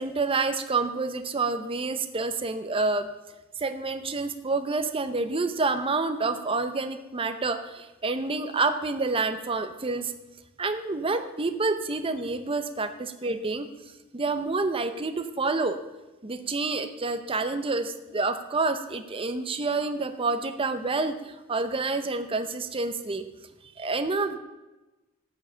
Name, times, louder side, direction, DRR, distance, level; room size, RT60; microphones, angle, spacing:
voice 1, 0.0-3.1 3.6-10.1 10.6-13.7 14.1-15.8 16.2-23.2 23.8-24.4, right 3 dB, 25° right, 8 dB, 0.7 m, -28 dB
12.0 x 7.5 x 6.9 m, 1.1 s
head